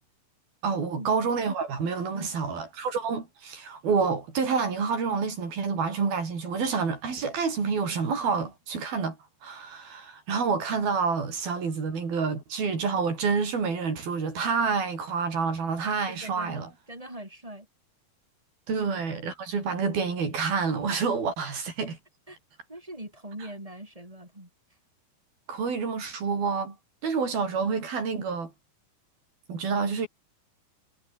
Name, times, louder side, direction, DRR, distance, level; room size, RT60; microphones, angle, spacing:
voice 1, 0.6-9.2 9.4-16.7 18.7-22.0 25.5-26.8 27.0-28.5 29.5-30.1, right 5 dB, 90° right, 7.4 m, -28 dB
voice 2, 16.2-17.7 22.3-22.4 22.7-24.5, right 1 dB, 10° right, 7.6 m, -42 dB
omnidirectional pair, 4.1 m